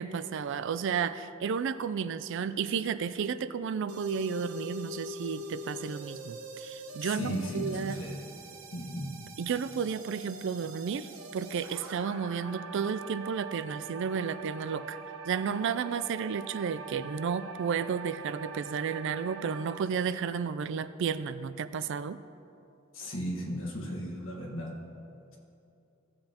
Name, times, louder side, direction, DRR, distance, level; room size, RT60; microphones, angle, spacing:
voice 1, 0.0-8.0 9.4-15.0 15.3-22.2, right 6 dB, 60° right, 14 dB, 0.3 m, -32 dB
sound 1, 3.9-19.9, right 2 dB, 85° right, 1.0 m, -44 dB
voice 2, 7.0-8.2 8.7-9.2 22.9-24.8, equal, 65° left, 0 dB, 1.5 m, -35 dB
16.0 x 7.6 x 2.9 m, 2.8 s
head